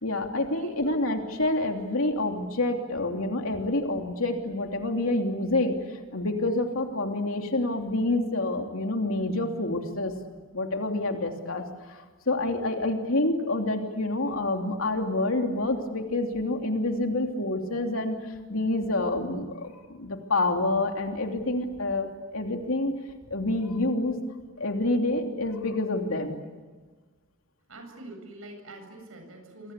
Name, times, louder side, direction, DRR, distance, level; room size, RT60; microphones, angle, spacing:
voice 1, 0.0-5.7 6.1-10.1 10.5-18.2 18.5-22.9 23.3-24.1 24.6-26.4, left 2 dB, 80° left, 3 dB, 3.1 m, -27 dB
voice 2, 27.7-29.7, right 1 dB, 85° right, 4 dB, 7.8 m, -45 dB
29.5 x 24.5 x 8.4 m, 1.3 s
head